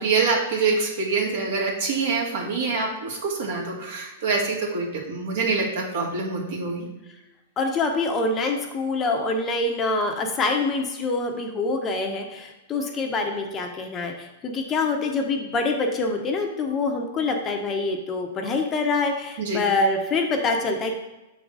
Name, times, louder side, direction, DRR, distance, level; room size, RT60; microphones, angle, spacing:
voice 1, 0.0-6.9 19.4-19.7, right 4 dB, 65° right, -2 dB, 2.1 m, -25 dB
voice 2, 7.6-20.9, left 3 dB, 20° left, 3 dB, 0.8 m, -25 dB
7.0 x 4.0 x 4.7 m, 1.0 s
hypercardioid pair, 150°, 0 cm